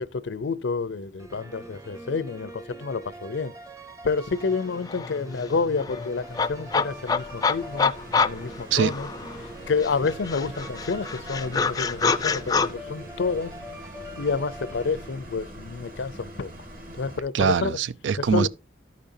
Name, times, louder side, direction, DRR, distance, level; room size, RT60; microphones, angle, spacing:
voice 1, 0.0-3.5 4.0-7.9 8.2-9.1 9.7-13.5 14.2-16.5 17.0-17.8 18.2-18.5, left 4 dB, 85° left, 0.5 m, -29 dB
sound 1, 1.2-15.5, equal, 15° right, 0.7 m, -43 dB
sound 2, 4.5-4.6 4.9-9.5 9.8-12.7, left 5 dB, 20° left, 0.4 m, -26 dB
sound 3, 5.3-17.2, equal, 50° right, 1.7 m, -44 dB
voice 2, 17.3-18.5, right 6 dB, 90° right, 0.4 m, -23 dB
13.5 x 5.1 x 2.7 m
head